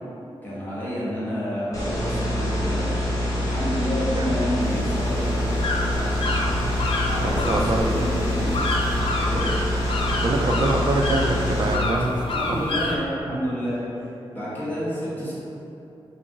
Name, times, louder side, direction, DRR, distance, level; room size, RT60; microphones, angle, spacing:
voice 1, 0.4-2.9 3.4-6.3 7.0-8.5 9.2-9.5 12.1-13.8 14.3-15.3, equal, 20° left, -10 dB, 1.2 m, -29 dB
sound 1, 1.7-11.7, left 1 dB, 35° left, 0.8 m, -25 dB
sound 2, 4.6-13.0, left 2 dB, 60° left, 0.4 m, -29 dB
voice 2, 7.2-8.1 9.0-9.1 10.2-12.1 12.5-12.6 13.3-13.4, right 2 dB, 45° right, 1 dB, 0.4 m, -25 dB
3.0 x 2.4 x 3.9 m, 2.8 s
wide cardioid pair, 90°, 10 cm